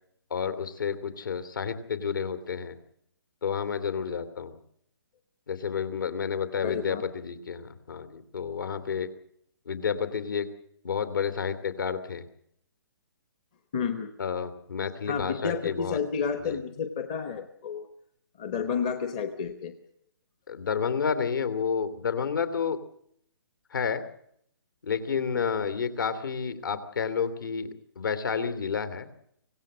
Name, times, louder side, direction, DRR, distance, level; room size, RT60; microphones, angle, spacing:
voice 1, 0.3-2.8 3.4-4.5 5.5-9.1 9.7-10.5 10.8-12.2 14.2-16.0 16.4-16.6 20.5-22.8 23.7-24.0 24.8-29.1, left 6 dB, 55° left, 12 dB, 3.0 m, -30 dB
voice 2, 6.6-7.0 13.7-14.1 15.1-17.9 18.4-19.7 25.2-25.4, left 6 dB, 15° left, 8 dB, 1.0 m, -31 dB
25.0 x 17.5 x 7.5 m, 0.70 s
hypercardioid pair, 180°, 13 cm